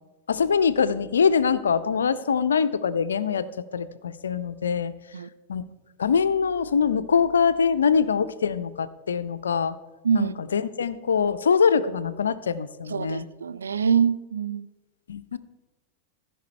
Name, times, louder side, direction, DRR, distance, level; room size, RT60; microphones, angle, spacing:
voice 1, 0.3-4.9 5.5-5.6 6.0-9.8 10.1-13.3 15.1-15.4, left 6 dB, 70° left, 0.5 m, -23 dB
voice 2, 12.9-14.7, right 7 dB, 70° right, 0.3 m, -24 dB
15.0 x 5.3 x 4.3 m
figure-of-eight pair, 90°, 0 cm